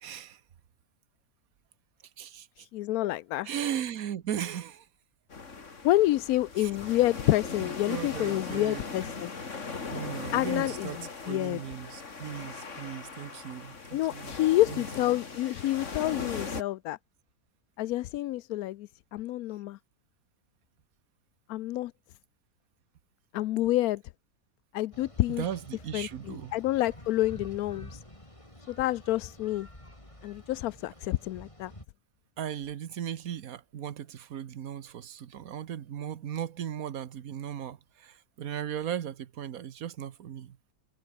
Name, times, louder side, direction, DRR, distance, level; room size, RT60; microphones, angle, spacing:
voice 1, 0.0-0.4 2.2-2.7 3.4-4.9 6.6-6.7 7.6-8.8 9.9-14.4 14.7-14.8 25.3-26.5 32.4-40.6, right 9 dB, 70° right, 1.4 m, -37 dB
voice 2, 2.6-3.5 5.8-9.3 10.3-10.9 11.3-11.6 13.9-17.0 17.8-19.8 21.5-21.9 23.3-24.0 24.7-25.4 25.9-28.0 28.7-29.7 30.2-31.7, left 15 dB, 80° left, 1.0 m, -28 dB
sound 1, 5.3-16.6, left 4 dB, 55° left, 2.6 m, -39 dB
sound 2, 24.9-31.8, left 1 dB, 20° left, 5.9 m, -49 dB
omnidirectional pair, 1.5 m